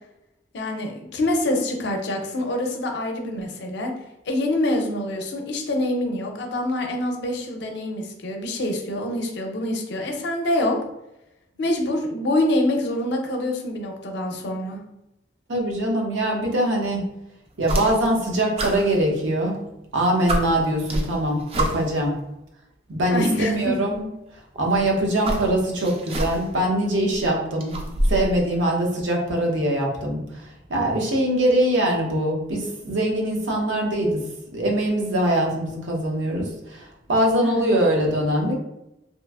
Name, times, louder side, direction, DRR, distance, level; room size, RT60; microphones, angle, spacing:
voice 1, 0.5-3.9 4.3-10.8 11.6-14.8 23.1-23.7 37.4-37.7, left 1 dB, 65° left, 3 dB, 0.5 m, -25 dB
voice 2, 15.5-17.0 17.6-19.6 19.9-22.1 22.9-24.1 24.6-27.7 28.1-34.2 34.5-38.6, right 1 dB, 85° right, 0 dB, 0.6 m, -23 dB
sound 1, 17.6-18.2 18.6-19.6 19.9-20.0 20.3-22.0 23.1-23.2 24.5-26.6 27.0-28.4, right 1 dB, 30° right, 0.3 m, -28 dB
2.8 x 2.4 x 2.3 m, 0.88 s
head